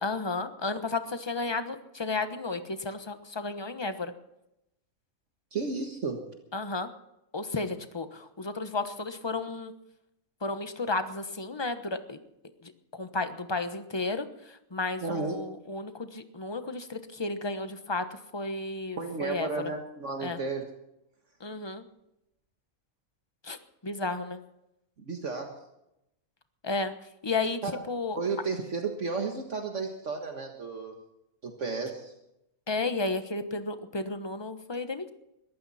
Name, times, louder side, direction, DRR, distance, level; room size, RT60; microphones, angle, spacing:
voice 1, 0.0-4.1 6.5-6.9 7.3-9.7 10.4-12.2 12.6-19.5 20.2-20.4 21.4-21.9 23.4-23.6 23.8-24.4 26.6-26.9 27.2-28.2 32.7-35.1, left 3 dB, 20° left, 9 dB, 1.1 m, -33 dB
voice 2, 5.5-6.2 15.0-15.4 19.0-20.7 25.0-25.6 27.6-27.8 28.2-31.0 31.4-32.1, right 4 dB, 60° right, 3 dB, 1.9 m, -33 dB
21.5 x 15.0 x 4.3 m, 0.85 s
omnidirectional pair, 1.4 m